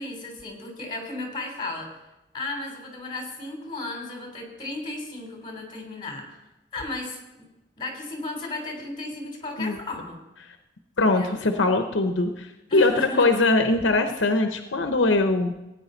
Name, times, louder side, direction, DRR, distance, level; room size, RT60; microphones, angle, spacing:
voice 1, 0.0-1.9 2.3-6.4 6.7-7.4 7.8-10.2 11.0-11.4 12.7-13.3, left 2 dB, 25° left, 1 dB, 3.5 m, -34 dB
voice 2, 11.0-12.9 13.2-15.5, left 2 dB, 75° left, 6 dB, 0.9 m, -21 dB
17.0 x 9.6 x 4.0 m, 0.96 s
head